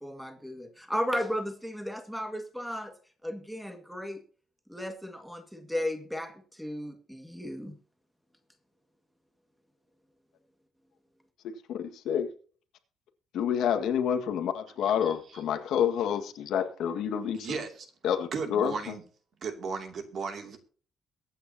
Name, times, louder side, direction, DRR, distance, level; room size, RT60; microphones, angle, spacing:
voice 1, 0.0-2.9 3.2-4.2 4.7-7.7, equal, ahead, 6 dB, 1.9 m, -35 dB
voice 2, 11.4-12.3 13.3-17.5 18.0-18.7, left 8 dB, 70° left, 6 dB, 1.8 m, -28 dB
voice 3, 14.8-15.4 17.4-17.9 18.3-19.0 19.4-20.6, right 5 dB, 40° right, 5 dB, 2.7 m, -36 dB
22.5 x 9.3 x 2.9 m, 0.42 s
cardioid pair, 165°, 0 cm